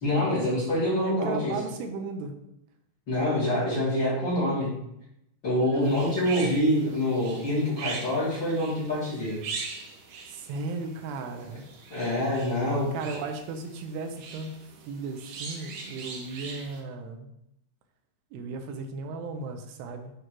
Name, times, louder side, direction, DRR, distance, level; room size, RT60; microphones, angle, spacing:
voice 1, 0.0-1.6 3.1-4.7 5.4-9.4 11.9-12.9, left 1 dB, 40° left, -8 dB, 2.0 m, -26 dB
voice 2, 1.0-2.3 5.6-6.0 10.3-11.6 12.9-17.3 18.3-20.1, right 3 dB, 85° right, 6 dB, 2.8 m, -36 dB
sound 1, 5.8-16.8, right 4 dB, 70° right, 2.1 m, -42 dB
8.8 x 3.2 x 4.4 m, 0.81 s
omnidirectional pair, 4.6 m